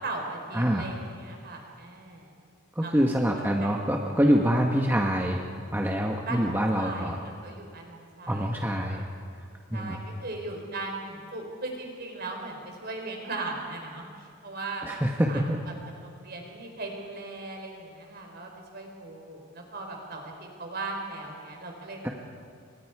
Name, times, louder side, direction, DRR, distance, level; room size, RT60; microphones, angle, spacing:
voice 1, 0.0-2.3 2.8-3.7 6.2-8.5 9.7-14.9 15.3-15.4 16.0-22.1, right 2 dB, 50° right, 1 dB, 4.4 m, -38 dB
voice 2, 0.5-0.9 2.8-5.4 5.7-7.2 8.3-9.0 9.7-10.0 14.8-15.6 22.0-22.1, equal, 10° right, 0 dB, 1.3 m, -25 dB
29.5 x 24.0 x 4.8 m, 2.2 s
head